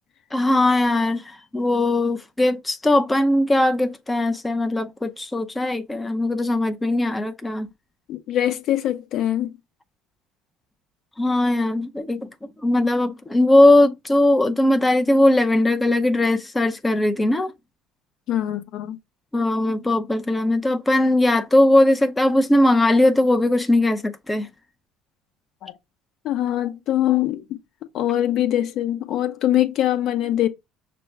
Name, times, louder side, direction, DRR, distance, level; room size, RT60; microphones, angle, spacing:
voice 1, 0.3-7.7 11.2-12.3 12.6-17.5 19.3-24.5, left 1 dB, 15° left, 0.6 m, -19 dB
voice 2, 8.1-9.5 18.3-19.0 25.6-25.7 26.2-27.4 27.9-30.5, left 12 dB, 55° left, 0.8 m, -23 dB
5.9 x 2.3 x 3.4 m
hypercardioid pair, 60°, 0 cm